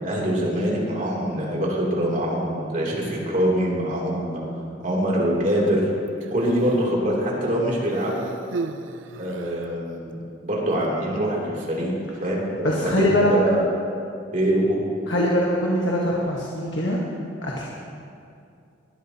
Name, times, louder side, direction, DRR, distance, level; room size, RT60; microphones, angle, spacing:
voice 1, 0.0-4.4 4.8-5.8 6.3-8.2 9.1-10.1 10.4-11.9 12.2-13.6 14.3-14.8, equal, 45° right, -4 dB, 3.0 m, -24 dB
Human voice, 6.1-7.0 7.9-9.8 10.7-10.9, right 4 dB, 80° right, 0.6 m, -36 dB
voice 2, 12.6-13.3 15.1-17.0 17.4-17.6, left 1 dB, 70° left, -3 dB, 1.4 m, -22 dB
20.0 x 12.0 x 2.9 m, 2.5 s
head